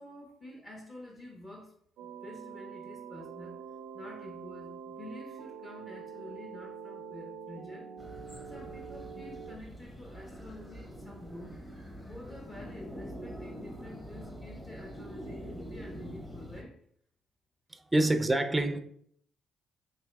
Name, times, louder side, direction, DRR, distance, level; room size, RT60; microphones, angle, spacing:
voice 1, 0.0-1.8 2.0-3.6 3.9-7.9 8.5-11.6 12.0-16.8 18.0-18.1, left 1 dB, 30° left, 1.0 m, -48 dB
sound 1, 2.0-9.6, right 7 dB, 85° right, 0.3 m, -45 dB
sound 2, 8.0-16.6, equal, 10° left, 1.0 m, -45 dB
voice 2, 17.7-18.8, right 2 dB, 15° right, 0.4 m, -27 dB
4.4 x 3.3 x 2.2 m
cardioid pair, 90°, 0 cm